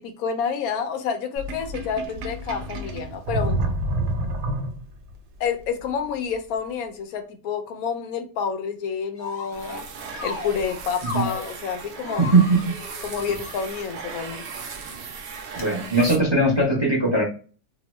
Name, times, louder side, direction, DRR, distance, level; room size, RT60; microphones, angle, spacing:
voice 1, 0.0-3.6 5.4-9.8 10.2-12.3 13.0-14.4, left 6 dB, 85° left, 1.0 m, -29 dB
Sink (filling or washing), 1.4-5.1, right 1 dB, 85° right, 1.1 m, -28 dB
sound 1, 9.2-9.8 10.1-11.6 12.0-13.9 14.5-14.7 15.5-15.6, left 4 dB, 50° left, 0.7 m, -36 dB
sound 2, 9.5-16.6, right 5 dB, 65° right, 0.7 m, -38 dB
voice 2, 15.6-17.2, right 2 dB, 25° right, 0.6 m, -19 dB
2.9 x 2.1 x 3.0 m
omnidirectional pair, 1.5 m